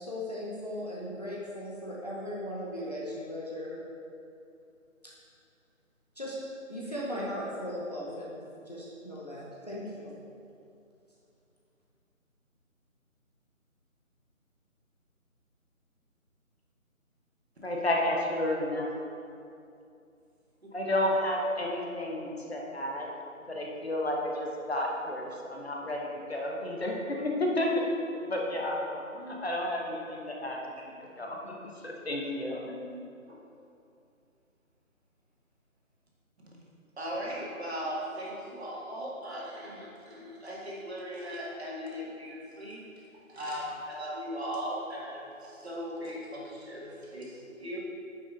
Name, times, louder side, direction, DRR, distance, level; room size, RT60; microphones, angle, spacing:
voice 1, 0.0-3.8 6.2-6.4 6.7-8.4 8.7-10.1, left 1 dB, 30° left, -6 dB, 0.8 m, -37 dB
voice 2, 17.6-18.9 20.7-23.1 23.5-27.9 28.3-30.6 31.2-31.5 31.8-32.9, left 1 dB, 45° left, -1 dB, 1.2 m, -31 dB
voice 3, 37.0-42.8 43.3-47.8, equal, 50° right, -5 dB, 2.0 m, -38 dB
9.1 x 5.8 x 3.8 m, 2.6 s
figure-of-eight pair, 160°, 42 cm